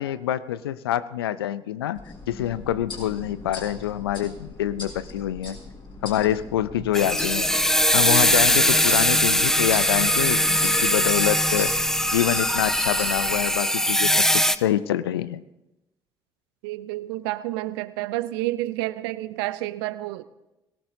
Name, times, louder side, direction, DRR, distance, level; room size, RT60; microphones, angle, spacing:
voice 1, 0.0-2.0 2.3-5.6 6.0-7.5 7.9-15.4, left 11 dB, 90° left, 17 dB, 0.4 m, -26 dB
sound 1, 1.9-13.6, left 2 dB, 45° left, 6.6 m, -41 dB
sound 2, 6.9-14.6, equal, 5° left, 0.7 m, -21 dB
voice 2, 16.6-20.2, right 17 dB, 80° right, 16 dB, 0.5 m, -29 dB
22.0 x 18.0 x 2.7 m, 0.98 s
hypercardioid pair, 50°, 12 cm